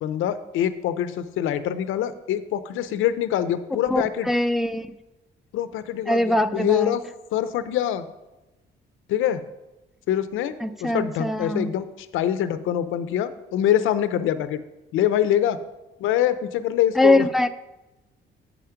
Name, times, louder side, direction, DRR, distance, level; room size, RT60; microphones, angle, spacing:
voice 1, 0.0-4.3 5.5-7.0 7.3-8.1 9.1-9.4 10.1-10.5 10.8-14.6 14.9-15.6 16.0-17.5, left 11 dB, 90° left, 0.6 m, -24 dB
voice 2, 3.9-4.9 6.1-6.9 10.6-11.7 17.0-17.5, left 1 dB, ahead, 0.4 m, -22 dB
8.6 x 5.0 x 5.7 m
cardioid pair, 90°, 20 cm